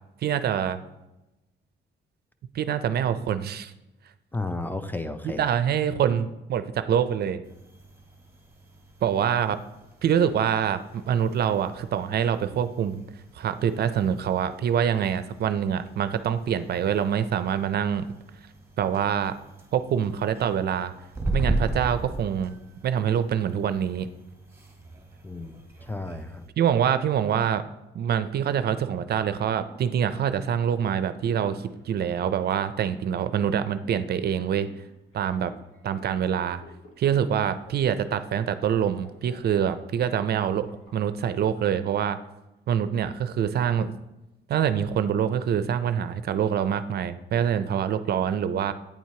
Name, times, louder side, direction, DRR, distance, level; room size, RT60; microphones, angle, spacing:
voice 1, 0.2-0.8 2.5-3.7 5.2-7.4 9.0-9.6 10.0-13.0 13.3-18.1 18.8-19.4 19.7-20.9 21.3-22.5 22.8-24.1 26.6-27.6 27.9-34.7 35.1-35.5 35.8-36.6 37.0-42.2 42.7-44.0 44.5-48.7, right 8 dB, 55° right, 12 dB, 0.4 m, -25 dB
voice 2, 4.3-5.5 25.2-25.6 25.9-26.4, left 2 dB, 10° left, 9 dB, 0.4 m, -32 dB
sound 1, 7.4-26.5, right 2 dB, 10° right, 1.2 m, -38 dB
sound 2, 29.6-41.6, left 2 dB, 75° left, 1.2 m, -53 dB
8.7 x 4.4 x 2.8 m, 0.96 s
cardioid pair, 90°, 20 cm